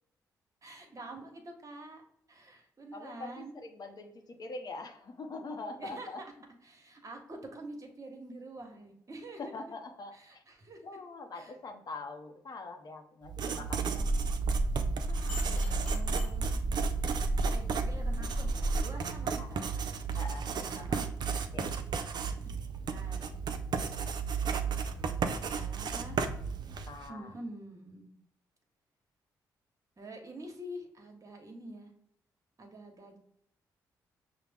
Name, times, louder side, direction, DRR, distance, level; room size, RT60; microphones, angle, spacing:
voice 1, 0.6-2.0 2.3-3.5 5.8-6.3 6.6-9.5 10.1-10.8 11.3-11.5 13.4-14.1 15.4-16.6 17.2-20.2 20.6-21.2 22.9-23.4 25.4-26.2 27.1-28.1 30.0-31.9 32.6-33.2, right 1 dB, 40° right, 3 dB, 1.0 m, -47 dB
voice 2, 2.9-6.2 9.4-10.4 10.8-14.1 15.1-15.9 19.4-19.5 20.1-21.1 21.5-21.8 26.9-27.3, left 3 dB, 50° left, 4 dB, 0.7 m, -44 dB
Writing, 13.2-27.1, right 6 dB, 55° right, 0.4 m, -34 dB
sound 1, 14.0-18.8, right 1 dB, 20° left, 1.4 m, -32 dB
5.7 x 2.0 x 3.4 m, 0.70 s
supercardioid pair, 50°, 9 cm